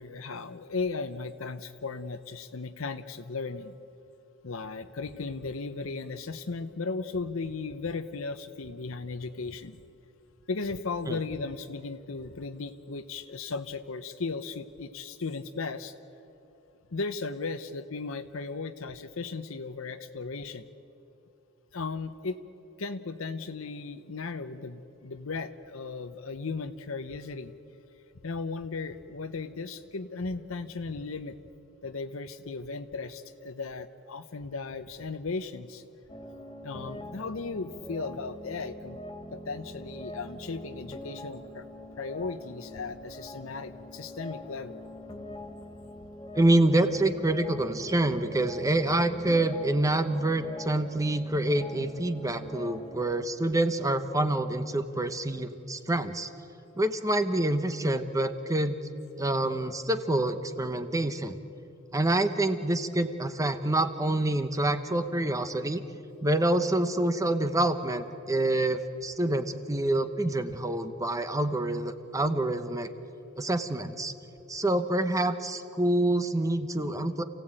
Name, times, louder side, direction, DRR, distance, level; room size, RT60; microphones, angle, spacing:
voice 1, 0.0-3.7 4.4-9.8 10.5-15.9 16.9-20.7 21.7-22.4 22.8-27.5 28.2-31.4 31.8-35.8 36.6-39.0 39.3-41.7 42.0-44.8 70.5-70.6, left 4 dB, 75° left, 9 dB, 0.8 m, -36 dB
sound 1, 36.1-53.0, left 1 dB, 20° left, 2.4 m, -44 dB
voice 2, 46.3-56.3 56.7-58.8 59.2-61.4 61.9-65.8 66.2-72.9 73.4-74.1 74.5-77.2, right 1 dB, 15° right, 10 dB, 1.0 m, -27 dB
28.0 x 16.0 x 8.9 m, 2.9 s
head